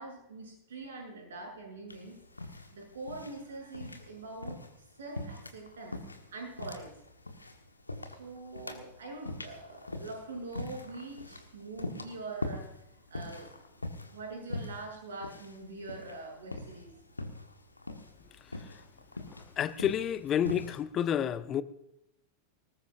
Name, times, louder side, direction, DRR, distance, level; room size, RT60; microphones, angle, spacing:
voice 1, 0.0-2.2 2.5-4.6 5.0-6.0 6.3-6.9 8.1-12.7 13.1-13.5 14.1-17.0, right 2 dB, 65° right, 8.0 m, -43 dB
sound 1, 1.9-20.8, left 2 dB, 80° left, 1.4 m, -43 dB
voice 2, 19.6-21.6, left 9 dB, 30° left, 0.8 m, -29 dB
21.0 x 19.0 x 2.6 m
figure-of-eight pair, 90°, 0 cm